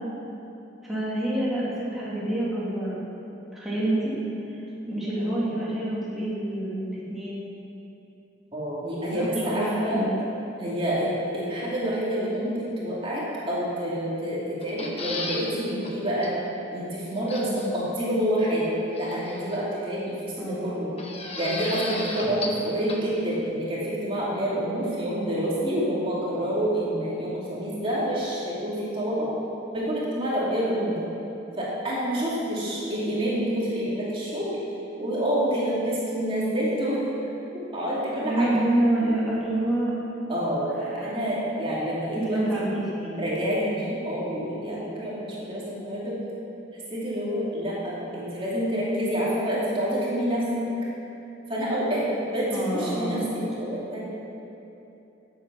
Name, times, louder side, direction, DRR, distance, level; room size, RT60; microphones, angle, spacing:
voice 1, 0.8-3.0 3.5-4.1 4.9-7.4 9.1-10.1 17.4-17.7 20.4-20.9 21.9-22.0 38.2-40.0 40.9-41.1 42.1-43.2 52.5-53.3, right 1 dB, ahead, -9 dB, 2.7 m, -27 dB
voice 2, 4.8-5.4 8.5-10.1 10.6-16.4 16.7-20.9 21.4-29.3 29.7-31.0 31.6-34.6 35.0-37.0 37.5-38.5 40.3-42.7 43.2-46.2 46.9-50.4 51.5-54.0, equal, 30° right, -7 dB, 2.5 m, -28 dB
sound 1, 14.6-15.5 15.8-15.9 16.2-16.3 17.3-17.7 19.0-19.6 21.0-22.6 22.9-23.0, left 2 dB, 35° left, 1.2 m, -34 dB
14.5 x 8.1 x 6.0 m, 2.9 s
head